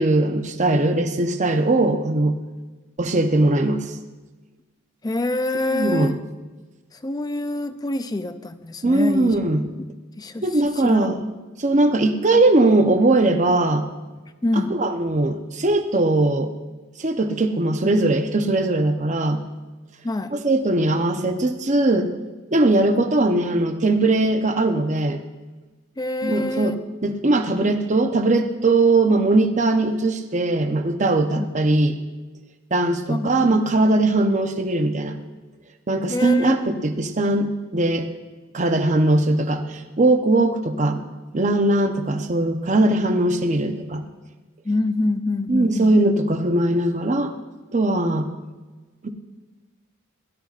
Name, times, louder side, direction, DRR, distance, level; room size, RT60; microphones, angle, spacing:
voice 1, 0.0-2.4 3.0-3.9 5.7-6.1 8.8-9.7 10.4-11.2 11.6-13.9 14.7-16.5 17.0-19.4 20.3-22.1 22.5-25.2 26.2-26.8 27.0-32.0 32.7-35.1 35.9-38.1 38.5-41.0 41.3-44.0 45.5-47.3 47.7-48.3 49.0-49.1, right 2 dB, 35° right, 6 dB, 0.7 m, -20 dB
voice 2, 5.0-6.2 7.0-9.3 9.8-9.9 10.2-10.4 10.8-11.1 14.4-14.8 20.0-20.3 26.0-26.7 31.4-31.5 33.1-33.6 36.1-36.7 44.6-45.9, left 2 dB, 20° left, 11 dB, 0.4 m, -26 dB
16.5 x 12.0 x 2.5 m, 1.2 s
head